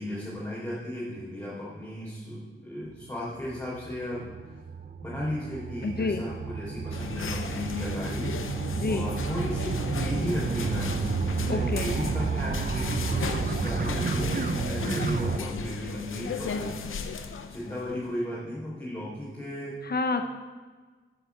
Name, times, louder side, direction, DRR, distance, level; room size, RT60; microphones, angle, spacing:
voice 1, 0.0-4.6 5.0-16.7 17.5-19.8, left 1 dB, 15° left, -8 dB, 3.8 m, -35 dB
sound 1, 2.9-15.4, right 5 dB, 50° right, 0.8 m, -31 dB
voice 2, 5.8-6.2 8.8-9.0 11.5-11.9 19.8-20.3, left 3 dB, 50° left, 6 dB, 0.9 m, -28 dB
sound 2, 6.9-18.0, left 5 dB, 90° left, 0.8 m, -36 dB
10.0 x 6.9 x 7.1 m, 1.4 s
wide cardioid pair, 95°, 21 cm